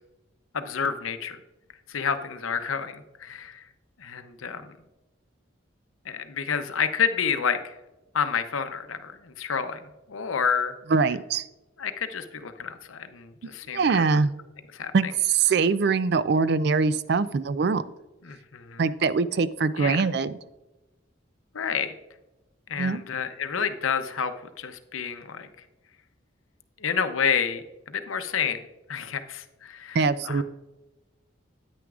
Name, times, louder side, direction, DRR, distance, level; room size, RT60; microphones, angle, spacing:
voice 1, 0.5-1.4 1.9-3.7 4.0-4.8 6.1-7.7 8.1-10.7 11.8-13.9 14.7-15.1 18.2-18.8 19.8-20.1 21.5-22.0 22.7-24.3 24.6-25.5 26.8-30.4, left 6 dB, 85° left, 9 dB, 0.7 m, -29 dB
voice 2, 10.9-11.5 13.7-14.3 14.9-17.8 18.8-20.4 22.8-23.0 29.9-30.4, right 4 dB, 55° right, 15 dB, 0.4 m, -23 dB
9.4 x 9.2 x 2.4 m, 1.0 s
head